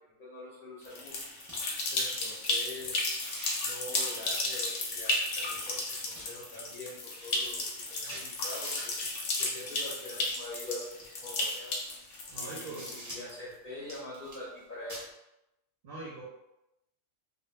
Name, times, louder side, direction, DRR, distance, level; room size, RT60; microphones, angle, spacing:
voice 1, 0.2-1.2 1.9-3.0 3.6-8.9 9.4-11.8 12.4-15.0, left 2 dB, 45° left, -7 dB, 0.8 m, -44 dB
sound 1, 0.8-13.3, left 2 dB, 85° left, 1.0 m, -34 dB
sound 2, 1.1-1.2 1.5-1.6 2.2-2.4 2.8-3.6 4.2-5.2 5.5-6.3 6.7-6.8 7.0-9.1 10.0-11.1 11.8-11.9 12.3-13.4 13.8-14.6 14.9-15.0, equal, 25° right, 0.4 m, -47 dB
voice 2, 12.3-12.9 15.8-16.2, right 2 dB, 60° right, -6 dB, 0.7 m, -41 dB
2.2 x 2.2 x 3.1 m, 0.90 s
omnidirectional pair, 1.3 m